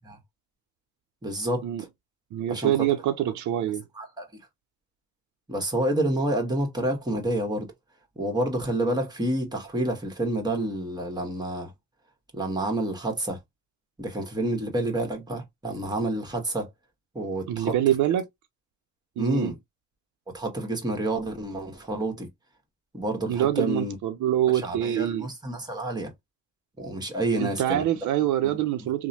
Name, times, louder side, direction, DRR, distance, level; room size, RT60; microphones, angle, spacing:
voice 1, 1.2-1.9 2.5-2.7 3.9-4.4 5.5-7.7 8.2-11.7 12.3-13.4 14.0-16.7 17.1-17.7 19.2-19.6 20.3-22.3 22.9-24.0 24.6-26.1 26.8-27.8 28.4-28.6, right 1 dB, 15° right, 1.2 m, -29 dB
voice 2, 2.3-3.8 17.5-18.2 19.2-19.5 23.3-25.3 27.3-29.1, right 12 dB, 75° right, 0.5 m, -25 dB
3.0 x 2.0 x 2.7 m
cardioid pair, 90°, 30 cm